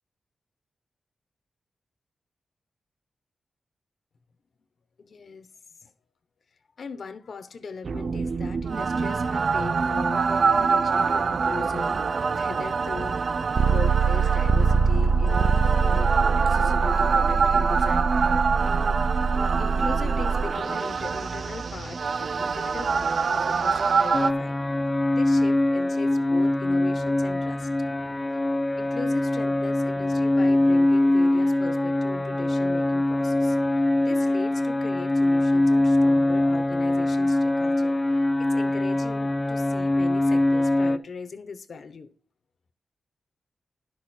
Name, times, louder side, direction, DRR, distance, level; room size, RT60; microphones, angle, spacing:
voice 1, 5.0-5.5 5.8-5.9 6.8-16.1 16.5-18.3 18.6-19.0 19.6-24.6 25.1-27.7 28.8-33.6 34.0-38.0 38.4-42.1, left 5 dB, 55° left, 0.9 m, -39 dB
sound 1, 7.8-24.3, right 5 dB, 50° right, 0.4 m, -23 dB
sound 2, 24.1-41.0, left 1 dB, 15° left, 0.5 m, -23 dB
11.5 x 6.4 x 4.3 m
wide cardioid pair, 150°, 0 cm